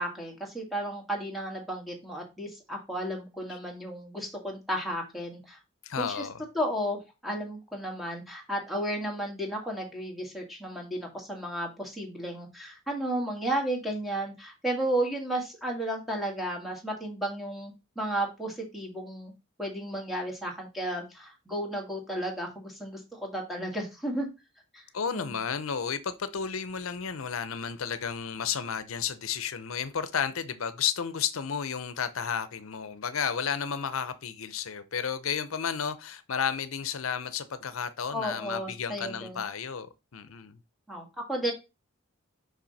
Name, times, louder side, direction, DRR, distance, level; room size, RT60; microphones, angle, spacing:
voice 1, 0.0-5.6 6.0-6.3 6.5-19.3 19.6-24.3 24.7-24.8 25.1-25.4 38.1-39.4 40.9-41.5, right 1 dB, ahead, 1.8 m, -33 dB
voice 2, 5.8-6.4 24.9-39.9 40.1-40.6, left 7 dB, 80° left, 0.7 m, -32 dB
5.9 x 5.5 x 4.1 m
head